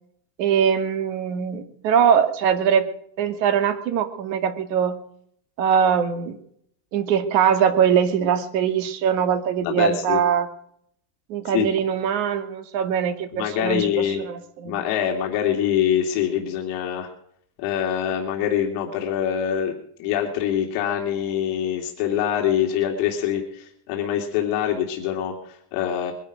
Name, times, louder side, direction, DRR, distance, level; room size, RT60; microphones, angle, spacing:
voice 1, 0.4-2.9 3.2-5.0 5.6-6.4 6.9-10.5 11.3-14.8, right 8 dB, 90° right, 8 dB, 2.4 m, -22 dB
voice 2, 9.6-10.2 11.5-11.7 13.3-14.2 14.6-17.1 17.6-19.7 20.0-26.1, left 9 dB, 55° left, 1 dB, 2.6 m, -24 dB
22.0 x 11.0 x 5.1 m, 0.67 s
cardioid pair, 180°, 49 cm